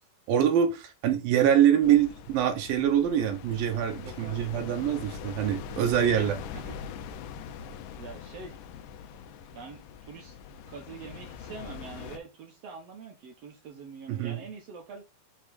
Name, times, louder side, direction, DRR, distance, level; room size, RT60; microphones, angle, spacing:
voice 1, 0.3-6.3 14.1-14.4, right 9 dB, 80° right, 2.8 m, -24 dB
sound 1, 1.8-12.2, left 7 dB, 75° left, 2.1 m, -42 dB
voice 2, 3.9-4.4 6.0-6.8 8.0-8.6 9.5-10.4 10.7-15.0, right 5 dB, 65° right, 1.7 m, -44 dB
7.2 x 3.8 x 4.1 m
omnidirectional pair, 4.0 m